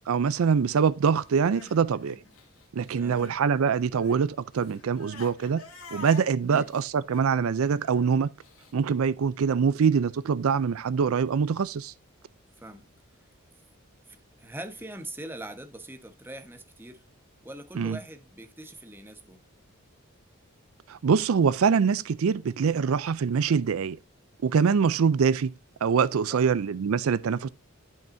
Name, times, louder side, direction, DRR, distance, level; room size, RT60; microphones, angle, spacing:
voice 1, 0.1-2.2 2.7-5.6 5.9-8.3 8.7-11.9 17.7-18.0 20.9-24.0 24.4-25.5 25.8-27.5, right 6 dB, 75° right, 0.4 m, -24 dB
Crying sobbing, 1.2-3.4 3.7-8.7, left 3 dB, 90° left, 2.5 m, -48 dB
voice 2, 2.9-3.3 6.5-6.7 12.6-12.9 14.1-17.0 17.4-19.4 26.3-26.4, right 1 dB, 10° right, 1.2 m, -42 dB
12.0 x 5.6 x 2.6 m
head